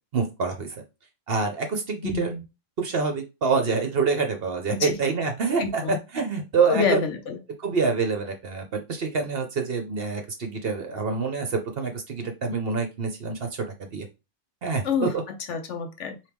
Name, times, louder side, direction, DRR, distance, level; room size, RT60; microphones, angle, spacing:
voice 1, 0.1-0.8 1.3-2.3 2.8-7.0 7.6-14.1 14.6-15.1, right 4 dB, 50° right, 0.9 m, -26 dB
voice 2, 2.0-2.4 4.7-4.9 5.6-6.0 6.7-7.4 14.8-15.1 15.5-16.2, left 6 dB, 65° left, 1.0 m, -27 dB
4.5 x 2.9 x 3.5 m
omnidirectional pair, 1.4 m